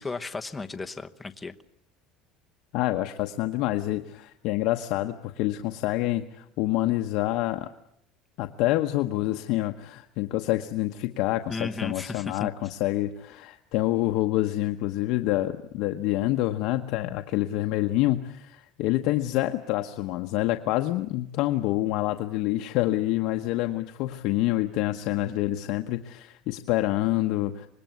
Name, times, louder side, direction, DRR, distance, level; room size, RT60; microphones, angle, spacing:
voice 1, 0.0-1.5 11.5-12.5, left 3 dB, 10° left, 6 dB, 1.0 m, -34 dB
voice 2, 2.7-7.7 8.4-27.7, left 16 dB, 60° left, 6 dB, 1.0 m, -27 dB
25.5 x 20.5 x 9.4 m, 0.74 s
cardioid pair, 165°, 0 cm